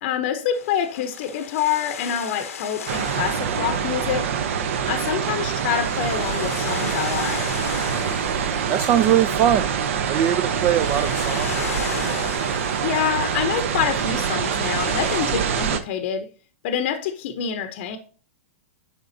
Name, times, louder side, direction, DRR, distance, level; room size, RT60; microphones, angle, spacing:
voice 1, 0.0-4.3 4.9-7.5 12.8-16.3 16.6-18.0, left 8 dB, 55° left, 0.7 m, -26 dB
sound 1, 0.5-15.3, left 7 dB, 85° left, 0.8 m, -37 dB
sound 2, 2.9-15.8, right 7 dB, 65° right, 0.7 m, -25 dB
voice 2, 8.7-9.7 10.1-11.5, right 10 dB, 35° right, 0.4 m, -21 dB
10.5 x 3.6 x 2.7 m
hypercardioid pair, 130°, 8 cm